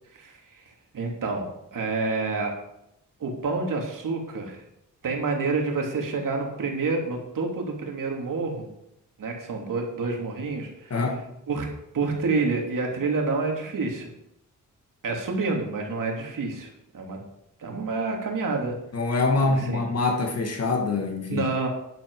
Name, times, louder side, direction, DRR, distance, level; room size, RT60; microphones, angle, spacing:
voice 1, 0.1-0.6 0.9-2.5 3.2-4.6 5.0-8.7 9.2-11.0 11.5-11.7 11.9-14.1 15.0-17.2 17.6-18.7 19.4-19.8 21.3-21.7, right 3 dB, 70° right, 1 dB, 3.1 m, -28 dB
voice 2, 10.9-11.2 18.9-21.5, left 3 dB, 50° left, 3 dB, 2.2 m, -25 dB
11.0 x 11.0 x 4.9 m, 0.81 s
wide cardioid pair, 115°, 33 cm